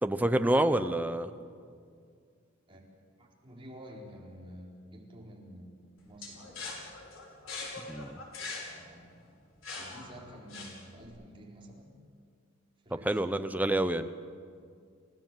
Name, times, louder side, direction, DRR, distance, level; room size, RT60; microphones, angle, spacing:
voice 1, 0.0-1.3 7.9-8.2 13.0-14.1, right 1 dB, 10° right, 9 dB, 0.9 m, -27 dB
voice 2, 3.2-6.8 8.6-9.3 9.7-12.0 12.8-13.3, equal, 25° right, -2 dB, 4.4 m, -50 dB
sound 1, 6.2-11.1, left 3 dB, 80° left, 5.4 m, -42 dB
29.5 x 16.5 x 7.6 m, 2.2 s
head